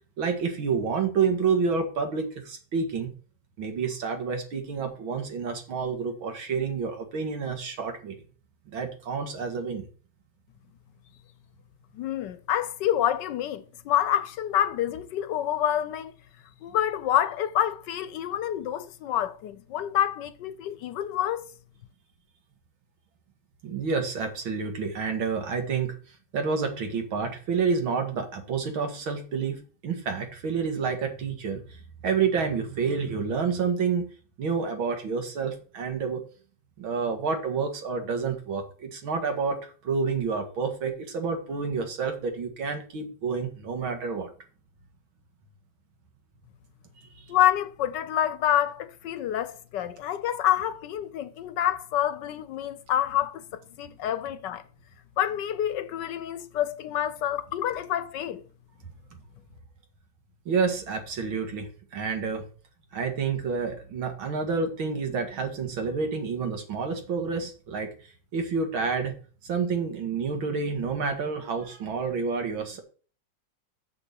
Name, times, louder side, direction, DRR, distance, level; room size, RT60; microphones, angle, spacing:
voice 1, 0.2-3.1 3.6-8.2 8.7-9.9 23.6-26.0 26.3-34.1 34.4-36.2 36.8-44.3 47.0-47.2 60.5-62.4 62.9-67.9 68.3-69.1 69.4-72.8, right 5 dB, 80° right, 2.6 m, -29 dB
voice 2, 11.9-16.1 16.6-21.5 47.3-54.6 55.2-58.4, left 11 dB, 70° left, 1.2 m, -27 dB
6.8 x 6.0 x 6.9 m
omnidirectional pair, 2.2 m